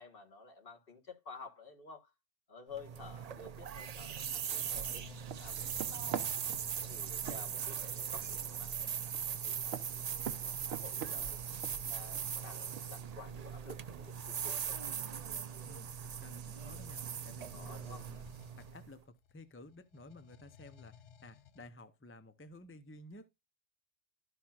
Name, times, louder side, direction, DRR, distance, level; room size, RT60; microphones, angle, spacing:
voice 1, 0.0-2.1 2.5-5.1 5.3-6.2 6.8-9.8 10.4-11.4 11.9-14.8 17.5-18.0, left 4 dB, 45° left, 1.7 m, -52 dB
sound 1, 2.7-18.9, right 8 dB, 75° right, 0.3 m, -40 dB
sound 2, 3.5-7.5 12.9-13.1 13.9-21.7, left 8 dB, 65° left, 0.9 m, -60 dB
sound 3, 3.5-15.3, right 8 dB, 55° right, 0.9 m, -48 dB
voice 2, 6.0-6.7 15.6-18.2 18.5-23.3, left 1 dB, 15° left, 0.4 m, -54 dB
13.0 x 5.8 x 2.4 m
omnidirectional pair, 1.4 m